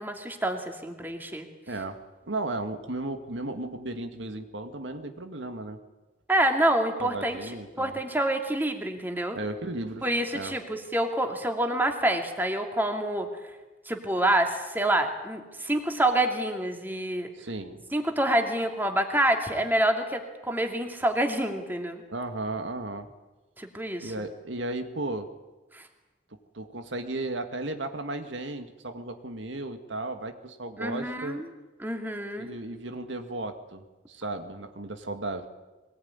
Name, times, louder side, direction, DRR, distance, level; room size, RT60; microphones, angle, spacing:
voice 1, 0.0-1.5 6.3-9.4 10.0-13.3 13.9-17.3 17.9-22.0 23.6-24.1 25.7-25.8 30.8-31.5 31.8-32.5, right 1 dB, 10° right, 4 dB, 2.5 m, -27 dB
voice 2, 1.7-2.0 2.3-5.8 7.0-8.0 9.3-10.5 17.4-17.8 22.1-23.1 24.0-25.3 26.5-31.4 32.4-35.5, right 2 dB, 85° right, 7 dB, 2.1 m, -35 dB
23.0 x 19.0 x 9.6 m, 1.1 s
head